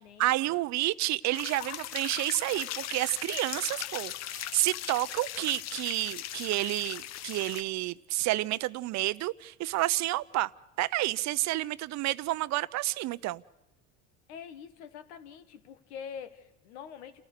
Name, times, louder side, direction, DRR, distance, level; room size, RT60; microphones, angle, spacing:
voice 1, 0.2-10.5 10.8-13.4, right 17 dB, 55° right, 18 dB, 0.7 m, -30 dB
sound 1, 1.3-7.6, left 13 dB, 55° left, 0.8 m, -39 dB
voice 2, 14.3-17.2, left 7 dB, 90° left, 11 dB, 1.5 m, -45 dB
29.0 x 14.0 x 6.7 m, 0.95 s
supercardioid pair, 95°, 32 cm